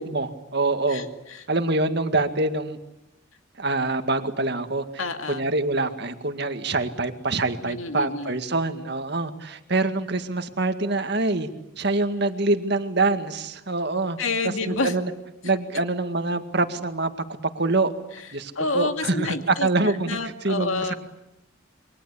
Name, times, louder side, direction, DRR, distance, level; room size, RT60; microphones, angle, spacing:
voice 1, 0.0-1.1 1.5-2.8 3.6-11.5 11.8-14.2 14.7-15.1 15.4-17.1 17.5-17.9 18.3-20.2 20.4-20.9, right 2 dB, 55° right, 8 dB, 2.0 m, -25 dB
voice 2, 0.9-1.4 5.0-5.5 7.6-8.4 14.2-15.0 18.5-20.9, left 3 dB, 80° left, 6 dB, 2.4 m, -29 dB
28.5 x 23.5 x 8.5 m, 0.89 s
head